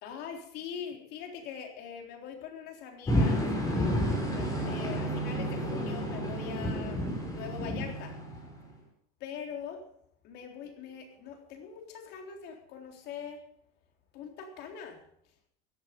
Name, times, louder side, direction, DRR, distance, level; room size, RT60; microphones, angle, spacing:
voice 1, 0.0-3.4 4.3-7.0 7.3-8.1 9.2-9.8 10.2-13.4 14.1-15.0, left 7 dB, 60° left, 3 dB, 3.7 m, -42 dB
sound 1, 3.1-8.8, equal, 20° left, 5.7 m, -30 dB
17.0 x 11.0 x 5.3 m, 0.71 s
cardioid pair, 140°, 19 cm